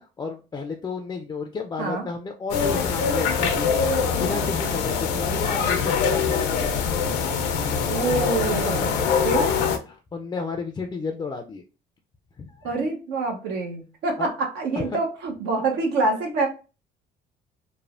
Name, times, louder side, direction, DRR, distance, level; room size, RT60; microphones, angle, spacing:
voice 1, 0.0-6.9 8.7-9.5 9.9-11.6 12.4-12.7 14.2-14.3 14.8-15.0, left 4 dB, 25° left, 4 dB, 0.3 m, -32 dB
sound 1, 2.5-9.8, left 6 dB, 85° left, 0.5 m, -23 dB
voice 2, 7.9-9.5 12.6-16.5, right 3 dB, 80° right, 2 dB, 0.8 m, -26 dB
3.1 x 2.0 x 2.4 m, 0.32 s
cardioid pair, 110°, 17 cm